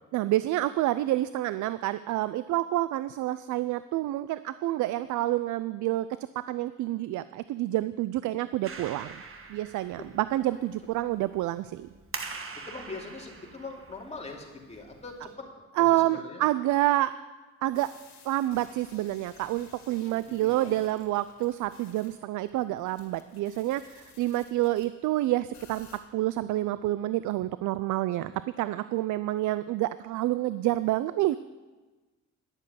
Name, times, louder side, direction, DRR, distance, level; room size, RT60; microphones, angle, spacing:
voice 1, 0.1-6.1 6.4-9.2 9.5-11.9 15.8-17.1 17.6-18.0 18.3-28.3 28.6-31.4, right 15 dB, 75° right, 15 dB, 0.4 m, -28 dB
Clapping, 8.6-15.3, right 4 dB, 45° right, 1.5 m, -44 dB
voice 2, 12.7-15.3 15.7-16.4 20.1-20.7, left 3 dB, 20° left, -1 dB, 2.7 m, -42 dB
sound 1, 17.7-24.9 25.5-26.0, left 5 dB, 65° left, 2.2 m, -55 dB
10.5 x 6.9 x 9.3 m, 1.3 s
cardioid pair, 90°, 30 cm